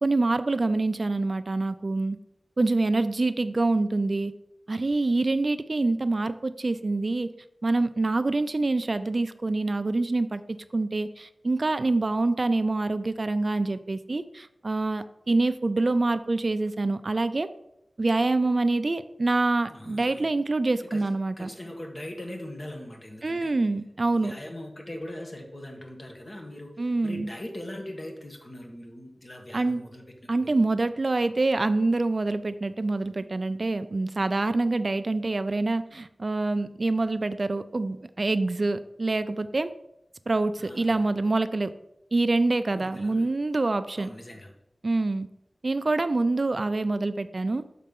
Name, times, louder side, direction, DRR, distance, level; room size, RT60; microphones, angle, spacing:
voice 1, 0.0-2.2 2.6-4.3 4.7-7.3 7.6-17.5 18.0-21.5 23.2-24.3 26.8-27.3 29.5-29.8 30.3-39.7 40.3-41.7 42.1-44.1 44.8-45.3 45.6-47.6, right 2 dB, 50° right, 11 dB, 0.4 m, -26 dB
voice 2, 19.7-20.3 20.9-21.0 21.4-23.5 24.2-26.7 27.0-30.0 30.4-30.6 40.6-40.9 42.7-43.3 44.0-44.5, left 1 dB, 40° left, 1 dB, 1.4 m, -40 dB
6.7 x 4.2 x 5.3 m, 0.82 s
wide cardioid pair, 80°, 0 cm